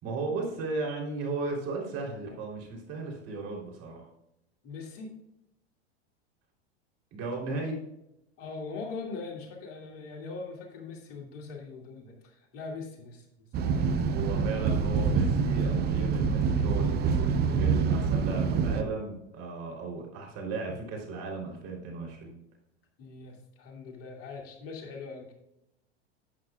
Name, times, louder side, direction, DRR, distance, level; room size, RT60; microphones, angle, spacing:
voice 1, 0.0-4.1 7.1-7.8 14.1-22.3, right 3 dB, 45° right, 0 dB, 3.7 m, -35 dB
voice 2, 4.6-5.1 8.4-13.3 17.3-18.0 23.0-25.3, left 4 dB, 45° left, 1 dB, 2.5 m, -41 dB
sound 1, 13.5-18.8, right 5 dB, 30° right, 0.8 m, -26 dB
11.5 x 8.5 x 2.5 m, 0.82 s
hypercardioid pair, 105°, 34 cm